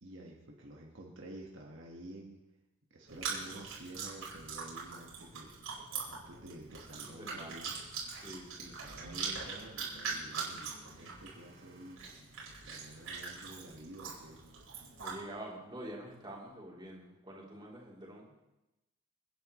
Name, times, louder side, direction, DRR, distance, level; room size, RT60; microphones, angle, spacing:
voice 1, 0.0-2.4 2.9-5.5 6.1-7.7 8.6-12.1 12.6-14.4, right 1 dB, 60° right, -1 dB, 1.6 m, -50 dB
Chewing mastication, 3.1-15.2, right 5 dB, 80° right, 4.9 m, -42 dB
voice 2, 6.9-7.5 8.2-8.7 15.0-18.4, right 1 dB, 20° right, -4 dB, 3.3 m, -47 dB
29.5 x 10.0 x 3.2 m, 0.97 s
head